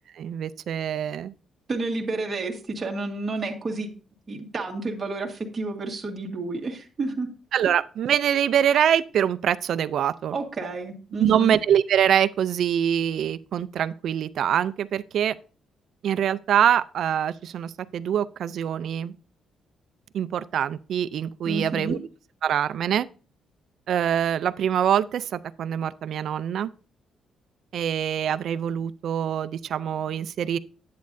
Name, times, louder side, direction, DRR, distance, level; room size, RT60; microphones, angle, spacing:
voice 1, 0.2-1.3 7.5-10.4 11.2-15.4 16.0-19.1 20.1-22.0 22.4-23.1 23.9-26.7 27.7-30.6, right 9 dB, 55° right, 0.4 m, -24 dB
voice 2, 1.7-3.9 4.3-7.3 10.3-11.6 21.4-22.0, right 3 dB, 20° right, 1.6 m, -30 dB
10.5 x 8.4 x 2.6 m
cardioid pair, 170°, 0 cm